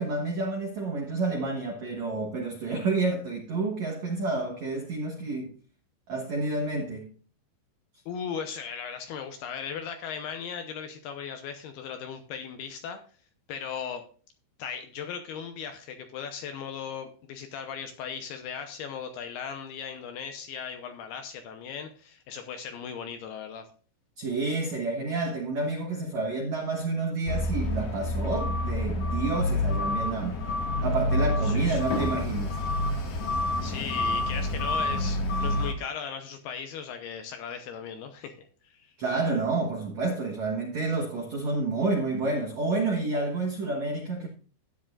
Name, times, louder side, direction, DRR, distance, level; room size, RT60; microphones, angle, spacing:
voice 1, 0.0-5.5 6.1-7.1 24.2-30.4 30.8-32.6 39.0-44.3, right 3 dB, 75° right, 1.6 m, -29 dB
voice 2, 8.1-13.0 13.5-14.0 14.6-23.7 31.4-31.8 33.6-38.9, left 7 dB, 80° left, 2.5 m, -37 dB
sound 1, 27.3-35.7, left 1 dB, 55° left, 2.2 m, -28 dB
13.5 x 9.9 x 2.4 m
omnidirectional pair, 5.3 m